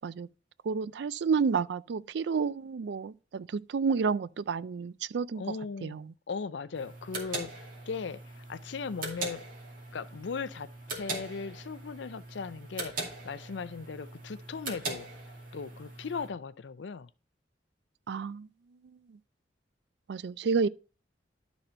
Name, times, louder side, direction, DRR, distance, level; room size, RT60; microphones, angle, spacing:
voice 1, 0.6-5.6 5.8-6.1 18.1-18.5 19.1-19.2 20.1-20.7, right 5 dB, 65° right, 0.4 m, -30 dB
voice 2, 5.4-6.0 6.3-9.4 9.9-17.1, left 5 dB, 80° left, 0.5 m, -38 dB
sound 1, 6.7-16.3, right 2 dB, 50° right, 2.4 m, -41 dB
11.5 x 4.1 x 4.3 m
head